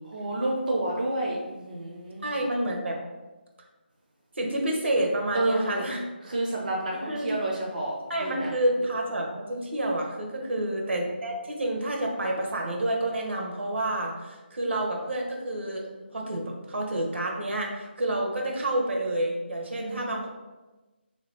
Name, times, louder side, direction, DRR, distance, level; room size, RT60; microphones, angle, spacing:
voice 1, 0.0-2.3 5.3-5.9 6.2-8.5 10.4-10.7 19.7-20.2, right 1 dB, 45° right, -2 dB, 0.5 m, -30 dB
voice 2, 2.2-3.0 4.3-6.0 7.0-7.3 8.1-20.3, right 1 dB, 85° right, 0 dB, 0.9 m, -29 dB
2.8 x 2.7 x 3.2 m, 1.1 s
figure-of-eight pair, 165°, 6 cm